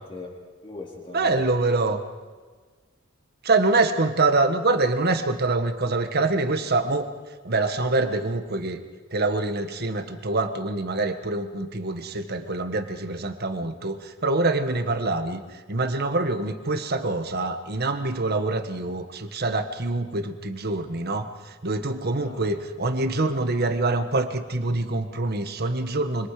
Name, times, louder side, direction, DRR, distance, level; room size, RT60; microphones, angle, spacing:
voice 1, 0.0-1.7 15.0-15.2 22.2-22.5, left 2 dB, 25° left, -2 dB, 4.2 m, -40 dB
voice 2, 1.1-2.0 3.4-7.1 7.4-8.8 9.1-15.4 15.7-26.3, right 2 dB, 50° right, 8 dB, 1.5 m, -25 dB
25.5 x 25.5 x 5.0 m, 1.4 s
head